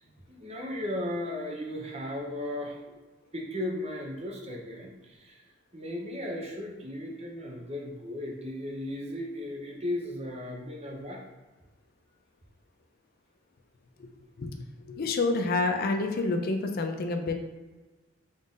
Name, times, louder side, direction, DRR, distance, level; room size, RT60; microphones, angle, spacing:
voice 1, 0.0-2.8 3.3-5.4 5.7-11.2, left 1 dB, 35° right, 0 dB, 0.7 m, -36 dB
voice 2, 14.4-17.3, left 3 dB, 50° left, 6 dB, 0.4 m, -28 dB
3.8 x 2.5 x 3.6 m, 1.2 s
head